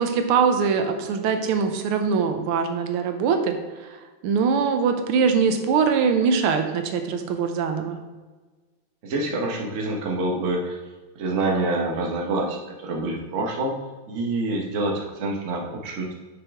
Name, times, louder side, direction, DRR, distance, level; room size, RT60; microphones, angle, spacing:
voice 1, 0.0-3.6 4.2-8.0, right 6 dB, 85° right, 6 dB, 1.6 m, -22 dB
voice 2, 9.0-10.8 11.1-13.8 14.1-16.1, right 2 dB, 45° right, 0 dB, 1.1 m, -26 dB
6.6 x 6.1 x 3.5 m, 1.3 s
omnidirectional pair, 2.4 m